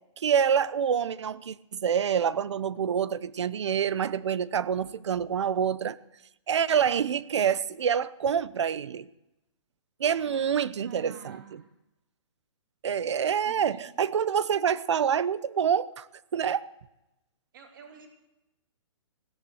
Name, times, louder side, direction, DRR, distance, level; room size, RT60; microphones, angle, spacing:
voice 1, 0.2-6.0 6.5-9.1 10.0-11.6 12.8-16.1 16.3-16.7, right 8 dB, 65° right, 0.7 m, -27 dB
voice 2, 10.2-11.6 13.4-13.8 17.5-18.1, right 7 dB, 40° right, 3.0 m, -49 dB
16.5 x 11.0 x 6.4 m
hypercardioid pair, 175°, 16 cm